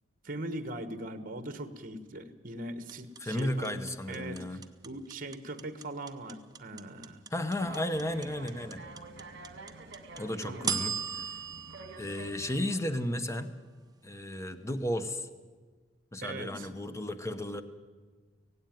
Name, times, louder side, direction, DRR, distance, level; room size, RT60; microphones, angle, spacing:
voice 1, 0.2-3.7 4.1-7.2 10.4-10.7 16.2-16.7, right 1 dB, 45° right, 11 dB, 1.4 m, -40 dB
sound 1, 2.9-13.1, right 6 dB, 20° right, 0.9 m, -38 dB
voice 2, 3.2-4.6 7.3-8.8 10.2-11.3 12.0-13.5 14.0-15.3 16.1-17.6, left 1 dB, 15° left, 10 dB, 0.9 m, -34 dB
sound 2, 7.6-12.6, right 2 dB, 60° right, 1.7 m, -48 dB
17.0 x 17.0 x 9.1 m, 1.4 s
head